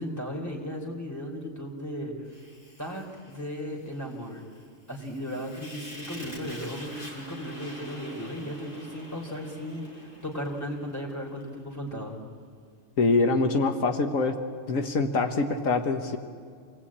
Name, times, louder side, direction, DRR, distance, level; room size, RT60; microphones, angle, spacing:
voice 1, 0.0-2.1 2.8-4.4 4.9-12.2, equal, 10° left, 0 dB, 3.7 m, -36 dB
Fire, 2.3-11.5, equal, 40° left, 5.6 m, -46 dB
voice 2, 13.0-14.4 14.7-16.2, left 3 dB, 80° left, 5 dB, 1.6 m, -24 dB
27.5 x 19.5 x 8.7 m, 2.2 s
omnidirectional pair, 1.4 m